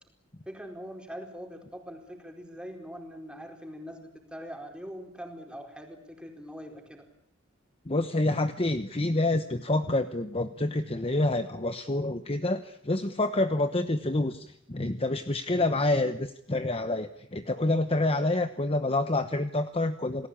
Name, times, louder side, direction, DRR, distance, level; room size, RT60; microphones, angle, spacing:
voice 1, 0.5-7.1, equal, 5° right, 3 dB, 4.5 m, -42 dB
voice 2, 7.9-20.3, left 2 dB, 30° left, 9 dB, 1.0 m, -27 dB
28.5 x 19.0 x 8.7 m, 0.73 s
head